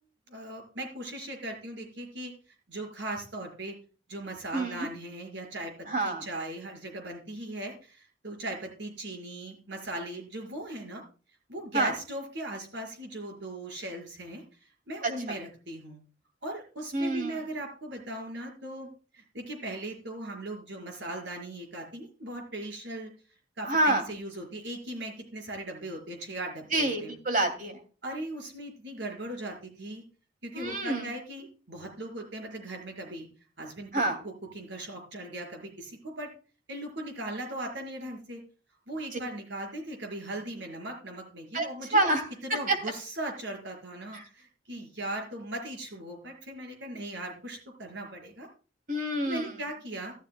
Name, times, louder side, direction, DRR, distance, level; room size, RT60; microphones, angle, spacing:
voice 1, 0.3-2.3 2.7-3.7 4.1-5.7 6.0-11.0 11.5-14.4 14.9-16.0 16.4-18.9 19.1-23.1 23.6-27.1 28.0-30.0 30.4-33.3 33.6-33.9 34.2-36.3 36.7-38.4 38.9-42.1 42.4-48.5 49.2-50.1, right 1 dB, 80° right, 2 dB, 5.4 m, -38 dB
voice 2, 4.5-4.9 5.9-6.2 11.7-11.9 15.0-15.4 16.9-17.4 23.6-24.0 26.7-27.8 30.5-31.1 33.9-34.2 39.1-39.2 41.5-41.7 41.9-42.3 42.7-42.8 44.1-44.3 48.9-49.5, right 2 dB, 45° right, 6 dB, 2.7 m, -27 dB
14.5 x 13.0 x 2.3 m, 0.36 s
head